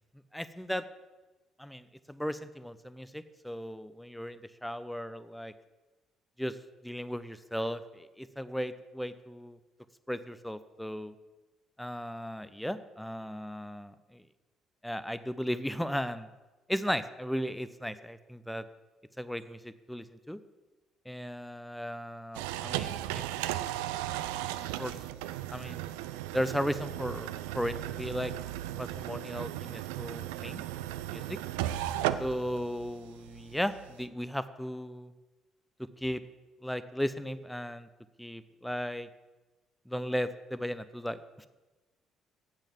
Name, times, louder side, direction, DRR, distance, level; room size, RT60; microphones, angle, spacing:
voice 1, 0.3-0.8 1.6-5.5 6.4-6.6 6.8-9.6 10.1-11.1 11.8-14.2 14.8-16.3 16.7-18.6 19.2-20.4 21.1-23.2 24.8-25.0 25.5-25.8 26.3-28.3 28.8-30.6 31.1-31.4 32.2-35.1 36.0-36.2 36.6-37.9 38.2-39.1 39.9-41.5, equal, 5° left, 14 dB, 0.6 m, -36 dB
sound 1, 22.3-34.1, right 13 dB, 70° right, 0.4 m, -36 dB
8.3 x 6.5 x 7.4 m, 1.2 s
figure-of-eight pair, 45°, 0 cm